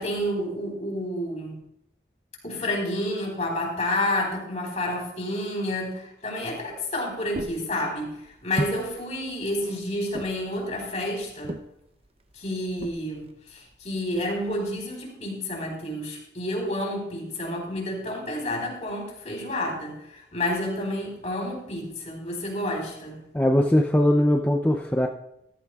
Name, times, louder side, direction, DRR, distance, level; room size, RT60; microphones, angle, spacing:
voice 1, 0.0-1.6 2.4-11.6 12.3-23.2, left 1 dB, 40° left, -1 dB, 3.8 m, -30 dB
sound 1, 6.4-14.8, right 1 dB, 35° right, 0.6 m, -39 dB
voice 2, 23.3-25.1, left 1 dB, 10° left, 1 dB, 0.5 m, -20 dB
14.5 x 14.0 x 2.4 m, 0.81 s
head